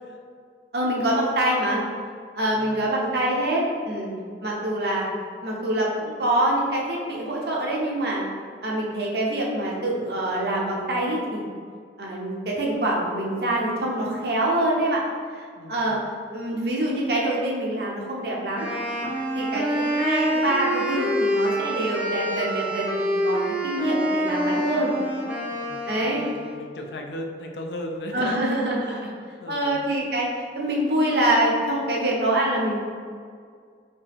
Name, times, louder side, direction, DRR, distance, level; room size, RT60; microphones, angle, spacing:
voice 1, 0.7-1.8 2.4-4.1 4.4-5.1 5.4-8.2 8.6-11.4 12.0-15.0 15.3-15.4 15.7-16.0 16.3-18.7 19.3-24.9 25.9-26.3 28.1-29.1 29.5-32.8, right 1 dB, 60° right, -3 dB, 0.9 m, -25 dB
voice 2, 2.5-3.0 15.6-16.2 25.5-28.4 28.8-29.1 29.4-29.9, left 1 dB, 70° left, 3 dB, 0.5 m, -37 dB
Wind instrument woodwind instrument, 18.5-26.6, equal, 10° right, 0.6 m, -26 dB
5.2 x 2.9 x 3.5 m, 2.1 s
head